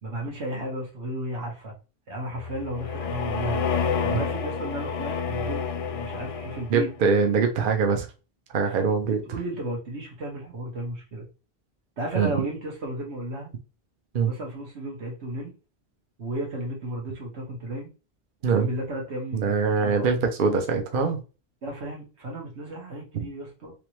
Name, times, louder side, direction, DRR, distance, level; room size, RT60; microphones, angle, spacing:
voice 1, 0.0-1.7 2.1-3.6 4.0-6.9 9.1-11.2 12.0-13.5 14.2-15.5 16.2-17.9 18.4-20.1 21.6-23.7, right 1 dB, 90° right, -1 dB, 1.5 m, -34 dB
sound 1, 2.3-7.0, left 6 dB, 65° left, 0.3 m, -29 dB
voice 2, 6.7-8.1 8.5-9.2 12.2-12.3 14.1-14.3 18.4-18.7 19.3-21.2, right 5 dB, 55° right, 5 dB, 0.8 m, -23 dB
3.3 x 3.0 x 3.0 m, 0.32 s
omnidirectional pair, 1.1 m